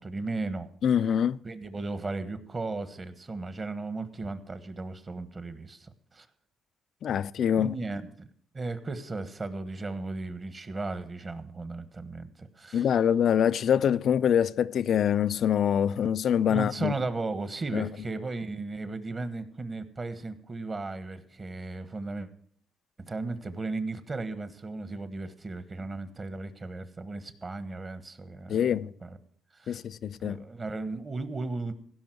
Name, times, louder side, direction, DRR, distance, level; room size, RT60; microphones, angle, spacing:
voice 1, 0.0-0.7 1.4-6.3 7.6-8.3 8.5-12.9 16.4-22.3 23.0-29.2 29.5-29.8 30.2-31.7, right 3 dB, 30° right, 1.3 m, -36 dB
voice 2, 0.8-1.4 7.0-7.7 12.7-16.9 17.7-17.9 28.5-28.9 29.7-30.4, left 9 dB, 65° left, 0.4 m, -25 dB
16.5 x 5.6 x 7.8 m
cardioid pair, 90°, 0 cm